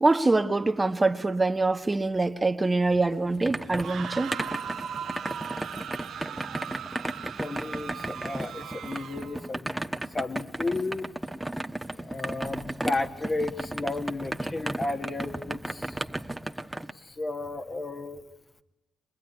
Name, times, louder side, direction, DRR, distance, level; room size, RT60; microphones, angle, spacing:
voice 1, 0.0-4.4, right 3 dB, 25° right, 1.2 m, -24 dB
sound 1, 2.9-16.9, right 1 dB, 10° right, 1.3 m, -35 dB
sound 2, 3.7-9.4, right 8 dB, 75° right, 1.4 m, -38 dB
voice 2, 7.4-11.1 11.9-16.1 16.9-18.2, left 2 dB, 40° left, 2.0 m, -33 dB
25.5 x 20.5 x 9.9 m
supercardioid pair, 55°, 0 cm